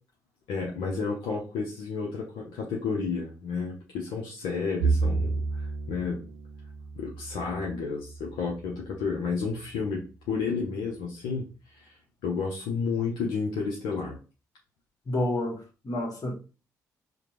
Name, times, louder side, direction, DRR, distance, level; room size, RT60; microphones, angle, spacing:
voice 1, 0.5-6.2 7.0-11.5 11.8-12.0 12.2-14.2, left 5 dB, 75° left, 0.7 m, -31 dB
Bowed string instrument, 4.8-9.2, right 4 dB, 90° right, 0.4 m, -31 dB
voice 2, 15.1-16.3, left 1 dB, 45° left, 1.4 m, -29 dB
5.0 x 2.2 x 3.0 m
hypercardioid pair, 40°, 9 cm